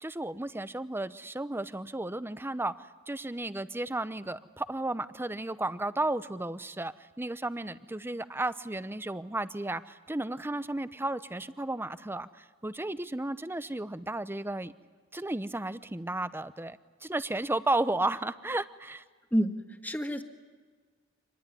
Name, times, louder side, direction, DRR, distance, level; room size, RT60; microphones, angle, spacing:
voice 1, 0.0-2.7 3.1-14.7 15.1-19.0, right 2 dB, 10° right, 13 dB, 0.7 m, -33 dB
voice 2, 19.3-20.2, equal, 10° left, 6 dB, 1.7 m, -29 dB
26.0 x 20.0 x 9.8 m, 1.5 s
head